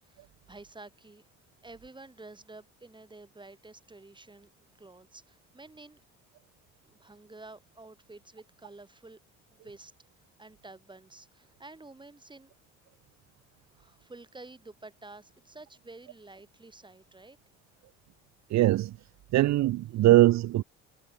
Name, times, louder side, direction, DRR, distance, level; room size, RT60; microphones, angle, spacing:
voice 1, 0.0-1.2 1.6-6.0 6.8-9.2 9.5-9.9 10.4-12.5 13.7-17.4, right 2 dB, 15° right, 7.3 m, -50 dB
voice 2, 18.5-18.9 19.3-20.6, right 15 dB, 65° right, 1.0 m, -21 dB
cardioid pair, 90°, 29 cm